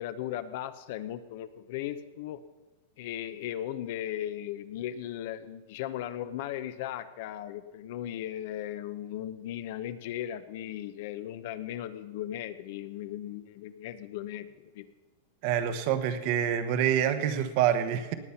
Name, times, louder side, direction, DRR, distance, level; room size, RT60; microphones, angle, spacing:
voice 1, 0.0-2.4 3.0-14.9, left 12 dB, 55° left, 12 dB, 0.8 m, -37 dB
voice 2, 15.4-18.1, right 9 dB, 50° right, 9 dB, 1.2 m, -26 dB
18.0 x 8.3 x 5.7 m, 1.2 s
supercardioid pair, 145°, 0 cm